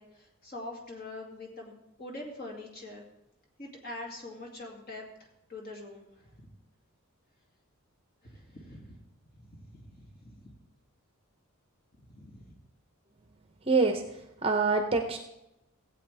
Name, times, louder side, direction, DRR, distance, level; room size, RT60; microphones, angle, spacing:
voice 1, 0.0-1.7 2.0-3.0 3.6-5.0 5.5-6.5 8.2-9.0 9.4-10.5 12.0-12.5, left 2 dB, 45° left, 0 dB, 2.3 m, -44 dB
voice 2, 13.6-14.0 14.4-15.2, right 4 dB, 25° right, 5 dB, 0.7 m, -25 dB
16.5 x 8.1 x 3.4 m, 0.88 s
head